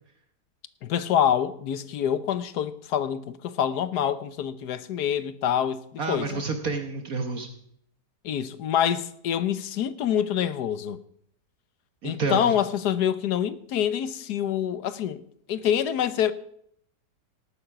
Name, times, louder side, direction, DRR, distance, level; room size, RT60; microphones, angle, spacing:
voice 1, 0.8-6.4 8.2-11.0 12.0-15.2 15.5-16.3, left 9 dB, 70° left, 1.3 m, -26 dB
voice 2, 6.0-7.5 12.0-12.5, right 4 dB, 55° right, 1.7 m, -29 dB
18.5 x 8.9 x 5.9 m
omnidirectional pair, 1.8 m